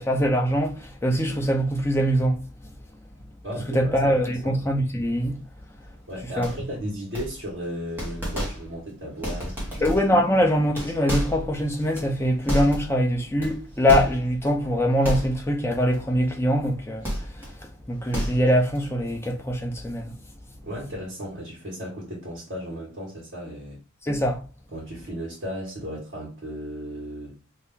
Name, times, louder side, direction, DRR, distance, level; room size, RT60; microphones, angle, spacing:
voice 1, 0.0-2.4 3.7-5.3 6.4-6.5 9.8-17.1 17.3-17.5 17.9-20.1 24.0-24.4, equal, 10° left, 0.5 m, -23 dB
voice 2, 3.4-4.6 6.1-9.9 20.6-23.8 24.7-27.4, equal, 55° right, 1.4 m, -35 dB
sound 1, 6.4-6.8 7.1-7.6 8.0-8.9 9.2-10.2 10.6-13.0 13.4-14.5 15.0-15.6 15.9-16.1 17.0-17.6 17.9-18.8, equal, 10° right, 1.1 m, -31 dB
2.8 x 2.5 x 3.4 m
head